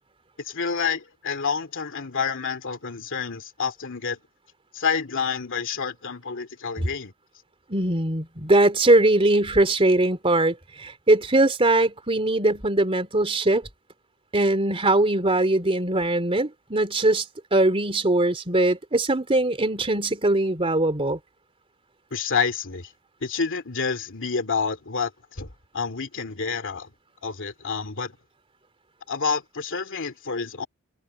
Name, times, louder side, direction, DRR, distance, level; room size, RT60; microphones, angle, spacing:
voice 1, 0.4-4.2 4.7-7.1 22.1-22.9 23.2-25.5 25.7-26.9 27.2-28.1 29.1-30.7, left 5 dB, 60° left, 2.5 m, -28 dB
voice 2, 7.7-13.7 14.3-17.2 17.5-21.2, right 2 dB, 25° right, 3.3 m, -21 dB
head